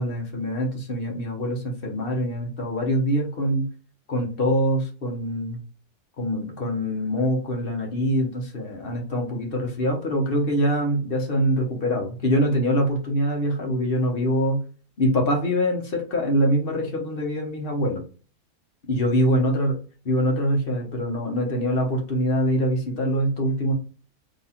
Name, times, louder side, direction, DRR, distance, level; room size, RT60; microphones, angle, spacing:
voice 1, 0.0-3.7 4.1-5.6 6.2-14.6 15.0-18.0 18.9-19.7 20.0-23.7, equal, 40° left, 2 dB, 1.0 m, -24 dB
3.8 x 2.9 x 4.2 m, 0.37 s
omnidirectional pair, 1.6 m